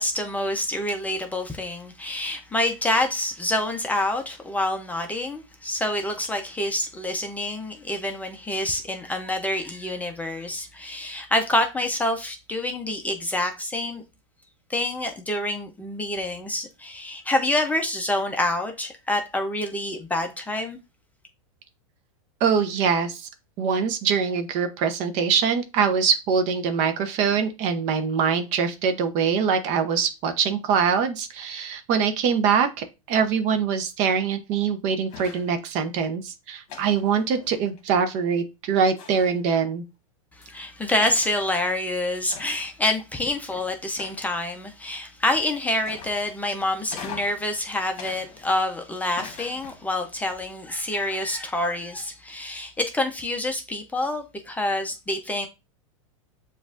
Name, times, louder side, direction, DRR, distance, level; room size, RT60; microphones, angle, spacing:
voice 1, 0.0-14.0 14.7-20.8 40.4-55.5, left 1 dB, 10° left, 0.6 m, -27 dB
voice 2, 22.4-23.3 23.6-39.8, right 6 dB, 45° right, 0.7 m, -23 dB
sound 1, 35.1-35.6 36.7-37.8 39.0-39.5 40.4-40.5 41.0-41.4 42.3-42.8 44.0-44.5 45.8-46.4 46.9-47.5 48.0-48.7 49.2-49.9, left 6 dB, 40° left, 1.3 m, -42 dB
7.0 x 2.5 x 2.5 m
hypercardioid pair, 125°, 17 cm